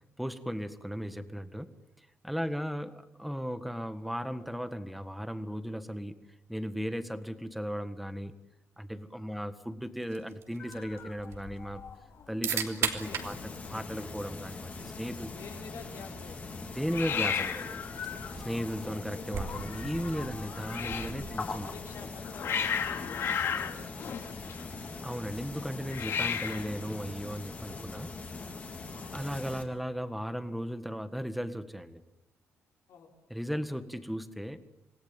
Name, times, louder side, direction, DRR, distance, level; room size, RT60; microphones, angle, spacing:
voice 1, 0.2-1.7 2.0-6.1 6.5-8.3 8.8-11.8 12.3-15.3 16.7-17.8 18.4-21.7 25.0-28.1 29.1-32.0 33.3-34.6, equal, ahead, 10 dB, 1.6 m, -36 dB
sound 1, 10.0-22.0, right 7 dB, 70° right, 3.1 m, -41 dB
Hiss, 10.6-11.9 12.2-12.7 12.9-13.0 13.2-13.9 16.9-21.2 21.9-24.9 25.8-26.8, left 7 dB, 55° left, 2.6 m, -35 dB
voice 2, 13.0-13.5 15.3-16.6 21.2-24.8 28.9-29.2 32.9-33.1, left 5 dB, 75° left, 1 dB, 5.6 m, -50 dB
sound 2, 13.0-29.6, left 3 dB, 30° left, 3.3 m, -42 dB
27.0 x 19.0 x 9.1 m, 0.92 s
cardioid pair, 145°, 5 cm